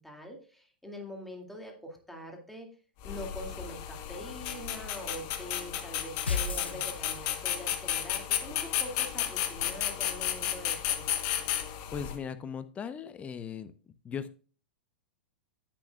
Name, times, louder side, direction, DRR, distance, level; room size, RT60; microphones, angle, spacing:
voice 1, 0.0-2.7 3.0-11.3, equal, 5° left, 1 dB, 2.1 m, -44 dB
sound 1, 3.0-12.2, left 11 dB, 50° left, 1.1 m, -33 dB
sound 2, 6.3-7.5, left 5 dB, 85° left, 0.7 m, -33 dB
voice 2, 11.9-13.7 14.0-14.4, left 7 dB, 25° left, 13 dB, 0.7 m, -38 dB
10.0 x 8.4 x 2.3 m, 0.37 s
hypercardioid pair, 105°, 6 cm